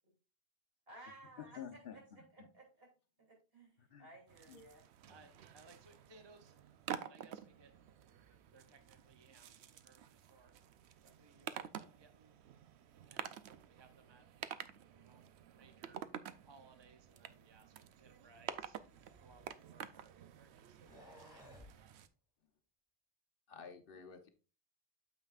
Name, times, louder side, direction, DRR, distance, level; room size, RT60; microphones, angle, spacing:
voice 1, 0.9-2.9 3.2-4.8, right 2 dB, 60° right, 0 dB, 3.1 m, -58 dB
voice 2, 1.4-1.9 2.4-2.5 3.8-4.1 4.5-4.6 5.0-5.3 23.5-24.3, left 7 dB, 60° left, 6 dB, 1.0 m, -51 dB
sound 1, 4.3-22.1, right 9 dB, 80° right, 0.8 m, -50 dB
voice 3, 5.1-6.6 6.9-7.7 8.5-10.5 11.0-12.4 13.0-14.2 14.9-16.0 16.4-18.8 19.2-20.8 21.1-21.9, right 3 dB, 30° right, 7 dB, 0.6 m, -64 dB
sound 2, 18.5-20.0 20.7-21.8, left 1 dB, 20° left, 2.5 m, -59 dB
8.9 x 7.1 x 2.4 m, 0.34 s
omnidirectional pair, 1.1 m